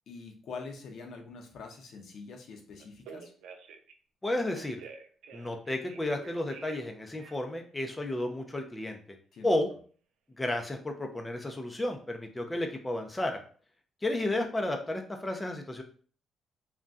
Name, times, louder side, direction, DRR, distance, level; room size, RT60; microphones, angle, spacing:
voice 1, 0.1-3.3 9.3-9.5, left 4 dB, 65° left, 2 dB, 0.6 m, -44 dB
Telephone, 2.8-3.9 4.5-6.9 7.2-7.6, right 6 dB, 85° right, 0.3 m, -48 dB
voice 2, 4.2-4.8 5.3-9.2 9.4-9.7 10.4-13.4 14.0-15.8, left 1 dB, 15° left, 3 dB, 0.4 m, -32 dB
2.6 x 2.2 x 3.5 m, 0.43 s
cardioid pair, 90°, 0 cm